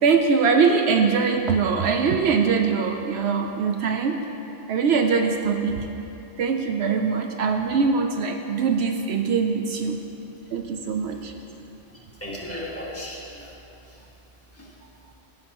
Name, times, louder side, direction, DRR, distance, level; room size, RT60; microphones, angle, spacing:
voice 1, 0.0-4.2 4.7-5.9 6.4-10.0 10.5-11.3, right 5 dB, 75° right, 4 dB, 0.8 m, -22 dB
voice 2, 11.1-11.6 11.9-13.5 13.8-14.1 14.5-14.7, left 1 dB, 10° left, -7 dB, 1.6 m, -37 dB
15.5 x 6.9 x 3.0 m, 3.0 s
omnidirectional pair, 1.2 m